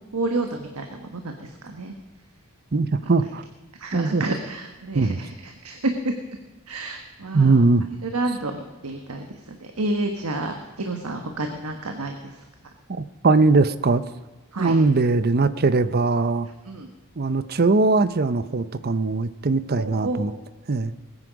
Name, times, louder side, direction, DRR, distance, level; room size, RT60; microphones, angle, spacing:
voice 1, 0.1-1.9 3.8-5.9 6.7-7.6 8.0-12.3 14.5-14.8 16.7-16.9 19.8-20.3, right 2 dB, 80° right, 4 dB, 1.4 m, -30 dB
voice 2, 2.7-3.4 3.9-4.2 4.9-5.2 7.3-7.8 12.9-14.0 14.6-16.5 17.2-20.3 20.7-20.9, right 3 dB, 45° right, 14 dB, 0.6 m, -20 dB
20.5 x 9.8 x 5.1 m, 1.3 s
head